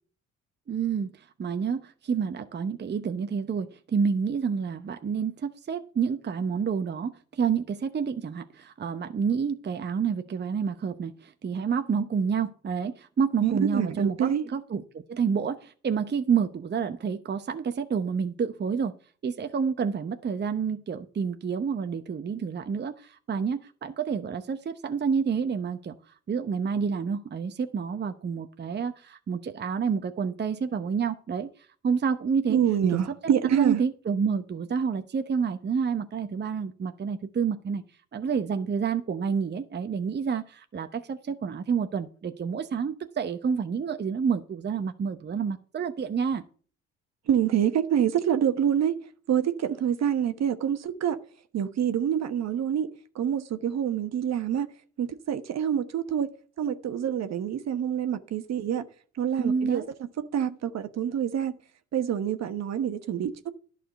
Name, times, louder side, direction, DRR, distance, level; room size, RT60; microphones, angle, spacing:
voice 1, 0.7-18.9 19.2-26.0 26.3-31.5 31.8-32.6 33.4-37.8 38.1-46.4 59.4-59.9, right 6 dB, 35° right, 0.9 m, -29 dB
voice 2, 13.4-14.4 32.5-33.8 47.3-48.9 49.3-51.2 51.5-52.9 53.1-54.7 55.0-56.3 56.6-58.9 59.2-59.8 60.3-61.6 61.9-63.5, right 9 dB, 60° right, 1.2 m, -26 dB
11.0 x 5.0 x 7.8 m
supercardioid pair, 65°, 31 cm